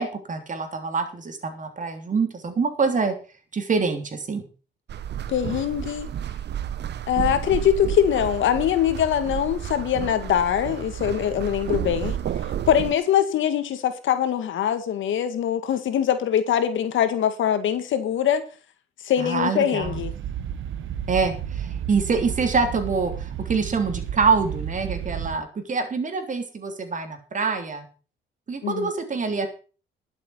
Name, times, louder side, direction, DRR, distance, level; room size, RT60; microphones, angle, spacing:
voice 1, 0.0-3.1 3.5-4.4 19.2-20.0 21.1-27.9 28.5-29.5, right 4 dB, 40° right, 7 dB, 3.3 m, -25 dB
sound 1, 4.9-12.9, right 10 dB, 60° right, 0.9 m, -31 dB
voice 2, 5.3-6.1 7.1-12.2 12.7-18.4 19.0-20.1 28.6-28.9, left 9 dB, 75° left, 10 dB, 2.0 m, -23 dB
sound 2, 19.8-25.4, right 9 dB, 75° right, 1.2 m, -32 dB
11.5 x 7.4 x 7.2 m, 0.37 s
cardioid pair, 90°, 20 cm